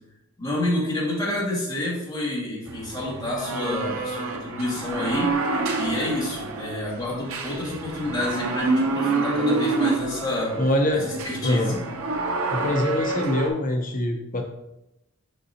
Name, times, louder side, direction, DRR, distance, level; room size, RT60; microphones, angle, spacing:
voice 1, 0.4-5.3 5.8-10.6 10.9-11.7, left 1 dB, 15° left, -6 dB, 1.9 m, -29 dB
sound 1, 2.7-13.5, right 3 dB, 80° right, 0.8 m, -28 dB
voice 2, 10.6-11.1 11.4-11.8 12.5-14.4, left 1 dB, 35° left, 3 dB, 0.6 m, -24 dB
6.6 x 5.1 x 2.8 m, 0.89 s
head